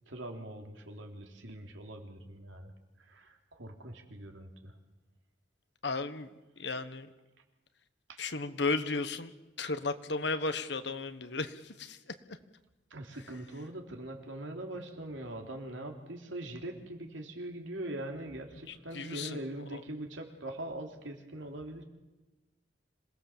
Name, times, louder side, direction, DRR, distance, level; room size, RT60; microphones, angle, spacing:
voice 1, 0.1-2.7 3.0-4.7 8.1-8.2 12.9-21.9, right 1 dB, 85° right, 3 dB, 3.4 m, -42 dB
voice 2, 5.8-6.3 6.6-7.1 8.2-9.3 9.6-12.1 18.7-19.4 19.7-19.8, left 3 dB, 65° left, 11 dB, 1.3 m, -34 dB
26.0 x 18.5 x 7.3 m, 1.1 s
head